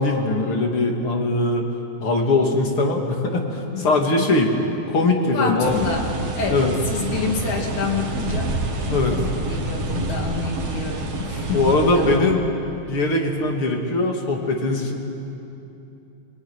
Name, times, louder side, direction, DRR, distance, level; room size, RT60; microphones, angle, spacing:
voice 1, 0.0-1.7 2.0-4.5 4.9-5.8 6.5-6.7 8.9-9.2 11.5-12.4 12.9-15.0, left 2 dB, 45° left, 2 dB, 3.3 m, -21 dB
voice 2, 5.3-6.1 6.4-8.8 9.1-12.3, left 4 dB, 75° left, 1 dB, 4.0 m, -28 dB
sound 1, 5.6-12.2, right 2 dB, 50° right, 3.2 m, -28 dB
29.0 x 19.0 x 9.9 m, 2.8 s
omnidirectional pair, 3.4 m